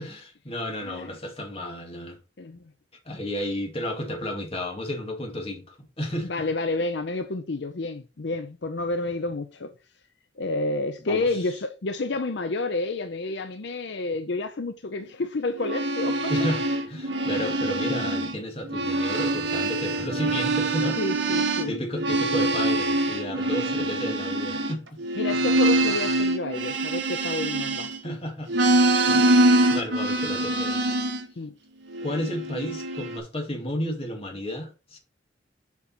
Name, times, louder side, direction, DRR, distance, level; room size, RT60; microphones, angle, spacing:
voice 1, 0.0-2.2 3.1-6.3 11.0-11.5 16.3-21.0 21.3-24.8 28.0-28.5 29.1-30.8 32.0-35.0, equal, 30° left, 2.1 m, -32 dB
voice 2, 0.8-1.2 2.4-2.6 6.2-9.7 10.4-16.3 16.7-16.8 17.4-17.6 21.0-21.8 23.8-24.0 25.2-27.9 31.4-31.5, left 2 dB, 60° left, 0.6 m, -30 dB
sound 1, 15.5-18.4 18.6-28.1 28.5-31.3 31.9-33.2, right 2 dB, 65° right, 1.6 m, -24 dB
7.2 x 5.3 x 4.3 m
head